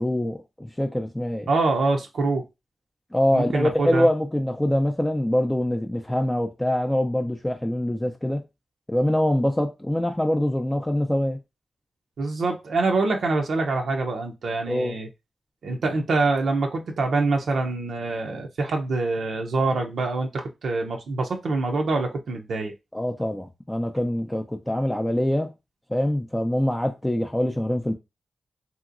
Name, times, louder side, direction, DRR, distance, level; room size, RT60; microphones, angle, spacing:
voice 1, 0.0-1.5 3.1-8.4 8.9-11.4 14.7-15.0 22.9-25.5 25.9-27.9, left 1 dB, 10° left, 0.4 m, -24 dB
voice 2, 1.5-2.4 3.3-4.1 12.2-15.1 15.6-22.7, right 3 dB, 75° right, 0.6 m, -25 dB
2.9 x 2.8 x 2.4 m
cardioid pair, 75°, 0 cm